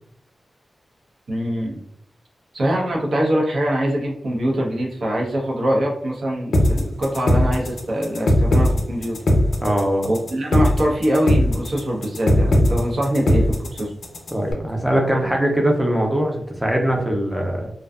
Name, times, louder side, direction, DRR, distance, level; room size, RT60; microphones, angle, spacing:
voice 1, 1.3-1.8 2.5-9.2 10.0-13.9, equal, 75° right, -3 dB, 0.8 m, -23 dB
sound 1, 6.5-14.5, left 1 dB, 75° left, 0.5 m, -18 dB
voice 2, 9.6-10.1 14.3-17.7, right 1 dB, ahead, 0 dB, 0.4 m, -21 dB
2.5 x 2.3 x 2.3 m, 0.70 s
wide cardioid pair, 130°, 0 cm